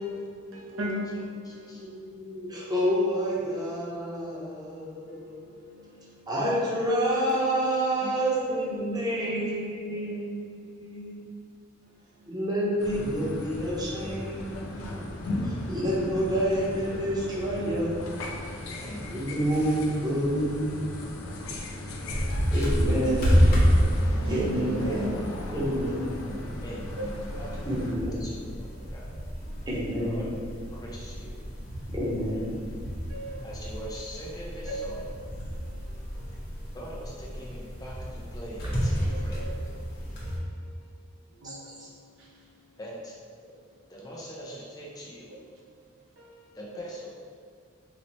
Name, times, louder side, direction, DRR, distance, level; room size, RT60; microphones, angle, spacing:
voice 1, 0.0-1.0 1.7-5.4 6.3-11.2 12.3-14.8 15.4-18.1 19.1-21.4 22.5-23.4 24.3-24.9 25.5-26.1 27.6-28.1 29.7-30.3 31.9-32.7 41.4-41.9, equal, 20° right, -7 dB, 0.7 m, -29 dB
voice 2, 0.5-1.6 5.1-6.0 11.8-11.9 15.3-15.5 16.4-16.5 24.2-25.2 27.0-27.1 29.5-29.7 33.1-33.5 34.7-35.0 35.4-35.8 36.1-36.3 36.6-36.7 39.1-39.6 40.2-40.5 41.3-41.7 45.3-45.4 46.2-46.5, right 1 dB, 80° right, -4 dB, 0.7 m, -36 dB
voice 3, 1.4-1.8 8.0-9.4 9.9-10.3 14.0-14.1 18.7-19.1 21.2-21.4 22.1-22.5 24.2-24.4 24.8-25.1 26.3-29.1 30.0-31.4 33.4-35.1 36.7-39.5 42.8-43.1 43.9-45.3 46.5-47.1, equal, 20° left, -5 dB, 0.5 m, -43 dB
sound 1, 12.8-27.9, left 1 dB, 90° left, 0.4 m, -37 dB
sound 2, 22.1-40.4, equal, 50° left, 0.8 m, -29 dB
4.0 x 2.0 x 3.0 m, 2.1 s
head